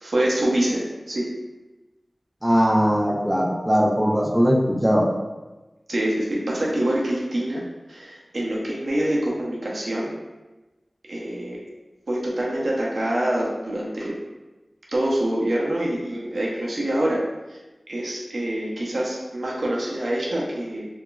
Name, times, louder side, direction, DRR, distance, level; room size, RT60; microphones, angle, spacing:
voice 1, 0.0-0.8 1.1-1.3 5.9-7.6 7.9-10.1 11.1-11.6 12.1-14.2 14.9-17.2 17.5-17.6 17.9-20.9, right 1 dB, 80° right, -4 dB, 0.5 m, -25 dB
voice 2, 2.4-5.1, equal, 10° right, -3 dB, 0.4 m, -20 dB
2.9 x 2.3 x 2.2 m, 1.1 s
wide cardioid pair, 70°, 0 cm